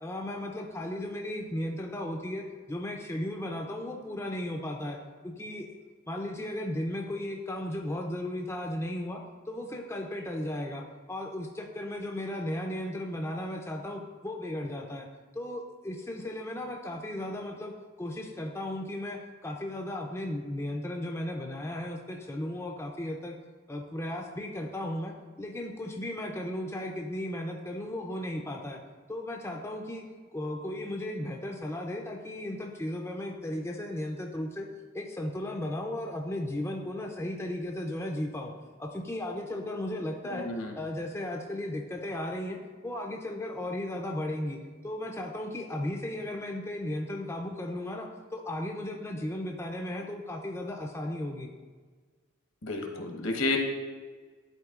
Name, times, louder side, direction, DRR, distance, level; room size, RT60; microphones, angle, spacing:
voice 1, 0.0-5.0 5.2-5.7 6.1-9.2 9.5-15.1 15.3-23.4 23.7-28.8 29.1-30.0 30.3-34.7 34.9-38.5 38.8-40.5 40.7-44.6 44.8-51.5, left 1 dB, 10° left, 1 dB, 0.4 m, -35 dB
voice 2, 40.3-40.8 52.6-53.6, left 2 dB, 75° left, 2 dB, 0.9 m, -31 dB
11.0 x 4.1 x 2.4 m, 1.5 s
head